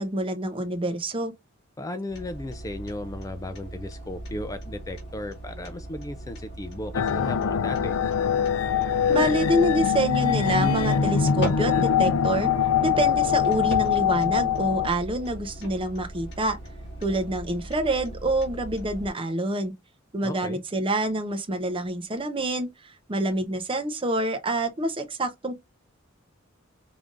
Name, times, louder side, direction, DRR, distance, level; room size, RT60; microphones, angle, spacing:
voice 1, 0.0-1.3 9.1-12.5 12.8-16.6 17.0-19.7 20.1-25.5, right 1 dB, 25° right, 0.8 m, -27 dB
voice 2, 1.8-7.9 20.2-20.6, left 1 dB, 15° left, 0.4 m, -35 dB
sound 1, 2.1-19.1, right 1 dB, 55° left, 1.8 m, -39 dB
sound 2, 6.9-14.9, left 8 dB, 85° left, 0.4 m, -23 dB
5.2 x 3.4 x 2.5 m
head